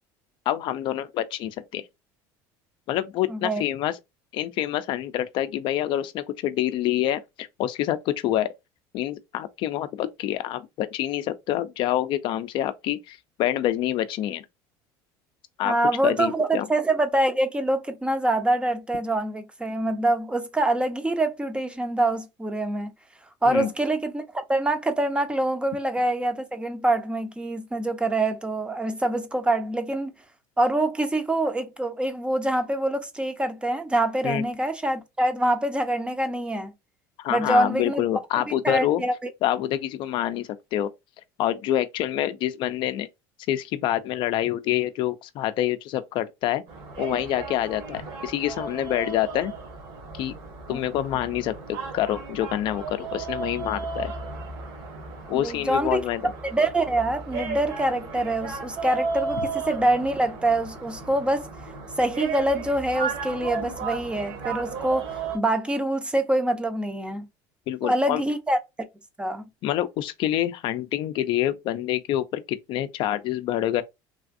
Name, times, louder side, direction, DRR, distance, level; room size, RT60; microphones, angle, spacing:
voice 1, 0.5-1.8 2.9-4.0 4.3-8.5 8.9-14.4 15.6-15.7 16.0-16.7 23.5-23.7 34.2-34.4 37.2-39.0 39.4-40.9 41.4-43.1 43.5-46.6 47.0-49.5 50.1-50.3 50.7-51.5 51.9-54.1 55.3-56.3 67.7-68.2 69.6-73.8, left 12 dB, 55° left, 0.4 m, -27 dB
voice 2, 3.3-3.6 15.6-22.9 23.4-30.1 30.6-36.7 37.3-38.0 38.6-39.3 50.7-50.8 55.3-61.4 62.0-67.3 67.8-68.6 69.2-69.4, right 1 dB, 10° right, 0.6 m, -25 dB
sound 1, 46.7-65.4, right 4 dB, 60° right, 1.4 m, -34 dB
3.3 x 2.4 x 2.4 m
supercardioid pair, 120°, 10 cm